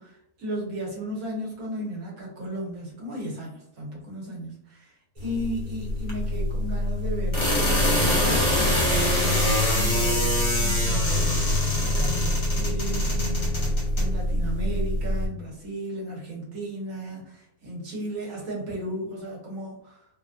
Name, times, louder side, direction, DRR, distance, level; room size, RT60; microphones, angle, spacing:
voice 1, 0.0-20.1, right 1 dB, 70° right, -3 dB, 1.5 m, -35 dB
sound 1, 5.2-15.3, left 1 dB, 40° left, 0.4 m, -24 dB
3.2 x 2.5 x 2.4 m, 0.75 s
omnidirectional pair, 1.6 m